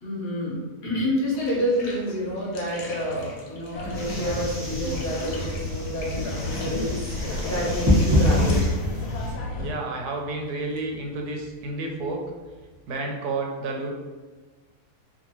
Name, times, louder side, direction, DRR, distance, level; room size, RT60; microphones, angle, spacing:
voice 1, 0.0-8.7, equal, 45° left, -6 dB, 0.7 m, -29 dB
Bathtub (filling or washing), 1.3-12.9, left 2 dB, 70° left, 0.9 m, -42 dB
sound 1, 3.7-9.7, left 2 dB, 90° left, 1.2 m, -32 dB
sound 2, 3.9-9.3, left 1 dB, 15° right, 0.7 m, -26 dB
voice 2, 9.6-12.2 12.9-13.9, right 3 dB, 90° right, 1 dB, 1.1 m, -30 dB
2.6 x 2.5 x 2.8 m, 1.3 s
omnidirectional pair, 1.6 m